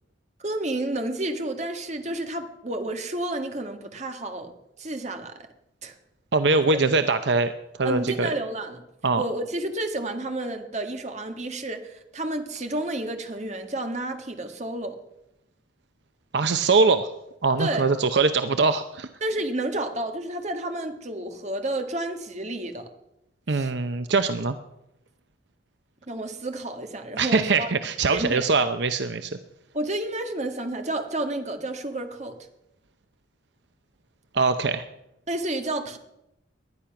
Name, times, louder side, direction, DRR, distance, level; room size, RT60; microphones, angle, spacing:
voice 1, 0.4-4.5 4.8-5.4 5.8-6.0 7.8-8.8 9.2-15.0 17.6-17.8 19.2-22.9 23.5-23.7 26.1-27.7 28.1-28.5 29.7-32.4 35.3-36.0, right 1 dB, 40° right, 6 dB, 1.7 m, -30 dB
voice 2, 6.3-7.5 7.8-8.3 9.0-9.2 16.3-17.1 17.4-19.1 23.5-24.5 27.2-29.4 34.3-34.8, right 4 dB, 70° right, 10 dB, 0.7 m, -22 dB
19.5 x 11.5 x 5.9 m, 0.87 s
head